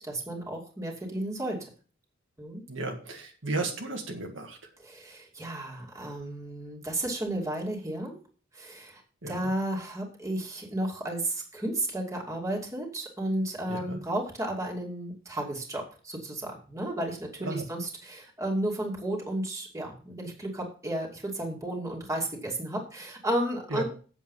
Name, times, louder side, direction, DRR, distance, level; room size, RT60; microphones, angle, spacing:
voice 1, 0.0-1.6 2.4-2.6 4.8-8.2 8.5-9.0 9.3-23.8, right 1 dB, 15° right, -2 dB, 2.6 m, -33 dB
voice 2, 2.7-4.6 9.2-9.5 13.7-14.0 17.4-17.6 23.7-23.8, right 2 dB, 70° right, 2 dB, 1.8 m, -34 dB
8.2 x 7.3 x 5.5 m, 0.40 s
head